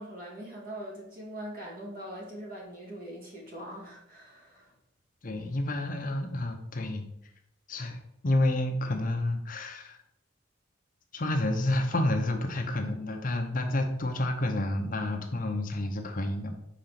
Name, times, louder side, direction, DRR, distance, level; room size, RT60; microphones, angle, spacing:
voice 1, 0.0-4.7, right 1 dB, 45° right, -3 dB, 2.2 m, -42 dB
voice 2, 5.2-7.1 7.7-10.0 11.1-16.5, left 1 dB, 45° left, 4 dB, 0.7 m, -29 dB
5.2 x 3.9 x 5.9 m, 0.78 s
head